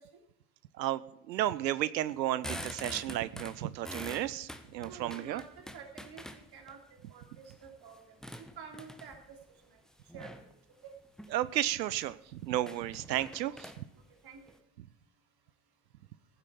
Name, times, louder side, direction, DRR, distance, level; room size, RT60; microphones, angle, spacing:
voice 1, 1.3-5.4 11.3-13.7, right 13 dB, 85° right, 18 dB, 0.6 m, -33 dB
sound 1, 2.1-6.7 7.3-9.3 10.1-10.5 11.0-11.4 11.7-11.8 12.1-12.2 12.6-14.6, equal, ahead, 1.2 m, -45 dB
voice 2, 4.8-5.5 5.7-9.4 10.1-10.3 10.8-10.9 13.5-13.6 14.2-14.4, right 6 dB, 50° right, 3 dB, 3.0 m, -50 dB
14.5 x 8.2 x 5.6 m, 0.75 s
figure-of-eight pair, 55°, 50 cm